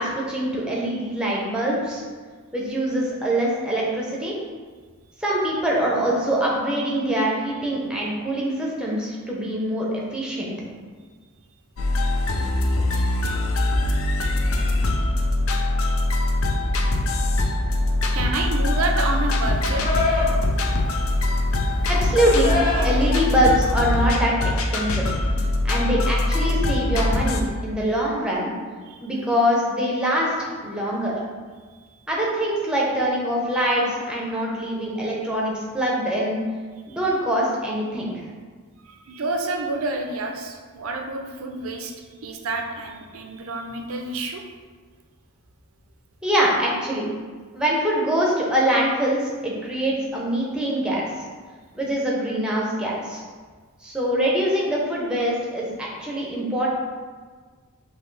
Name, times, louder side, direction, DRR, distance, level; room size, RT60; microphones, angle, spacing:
voice 1, 0.0-2.0 2.5-4.3 5.2-10.5 21.8-22.5 22.8-24.3 24.7-25.1 25.6-28.5 29.0-31.1 32.1-36.4 37.0-38.1 46.2-47.1 47.5-51.1 51.7-53.2 53.8-56.7, equal, 5° right, -4 dB, 0.8 m, -24 dB
sound 1, 11.8-27.4, left 1 dB, 65° left, 0.5 m, -22 dB
voice 2, 18.1-19.8 28.9-29.0 38.8-42.0 42.2-44.4, right 2 dB, 65° right, 3 dB, 0.5 m, -29 dB
Livestock farm animals working animals, 18.9-24.1, left 2 dB, 40° left, 1.0 m, -29 dB
5.5 x 2.8 x 3.2 m, 1.5 s
head